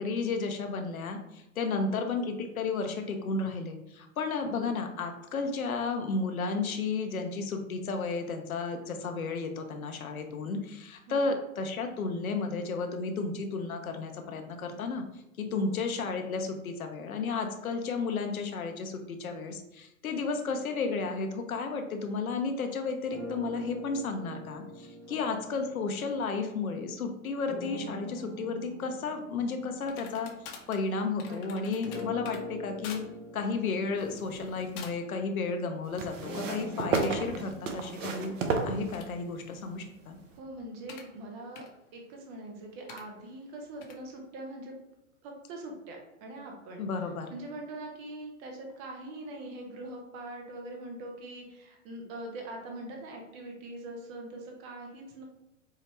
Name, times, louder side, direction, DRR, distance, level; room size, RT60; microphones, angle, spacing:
voice 1, 0.0-15.0 15.4-30.3 30.7-33.0 33.3-38.3 38.6-40.2 46.8-47.3, left 4 dB, 80° left, 5 dB, 0.7 m, -33 dB
voice 2, 1.7-2.0 4.5-4.7 11.1-11.4 15.5-15.8 25.0-25.3 31.3-32.1 40.4-41.7 41.9-44.7 45.2-46.8 47.3-55.2, right 1 dB, 20° right, 1 dB, 0.3 m, -43 dB
sound 1, 23.1-26.7 27.5-31.2 31.8-39.8, left 1 dB, 40° right, 1.5 m, -44 dB
sound 2, 29.8-32.4 32.8-33.1 33.4-33.7 34.3-34.5 34.8-35.2 35.6-36.0 36.9-37.1 38.7-41.1 41.6-41.7 42.9-43.0 43.8-44.0, left 6 dB, 40° left, 0.6 m, -47 dB
sound 3, 34.0-34.8 36.0-39.4 40.3-40.4, right 4 dB, 60° right, 0.7 m, -33 dB
4.6 x 2.1 x 3.0 m, 0.85 s
figure-of-eight pair, 105°, 42 cm